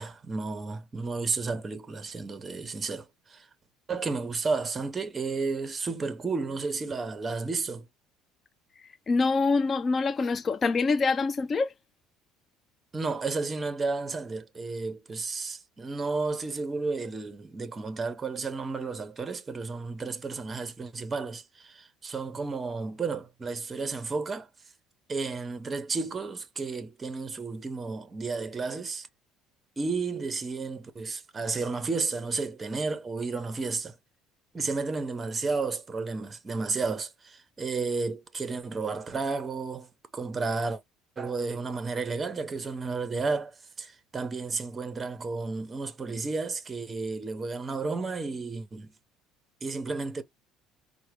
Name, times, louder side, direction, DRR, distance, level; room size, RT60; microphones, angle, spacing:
voice 1, 0.0-3.5 3.9-7.9 12.9-24.5 25.1-29.1 29.8-34.0 34.5-40.8 41.2-48.9 49.6-50.2, right 4 dB, 15° right, 0.7 m, -32 dB
voice 2, 9.1-11.7, left 4 dB, 20° left, 0.3 m, -25 dB
5.6 x 2.1 x 3.1 m
cardioid pair, 175°, 0 cm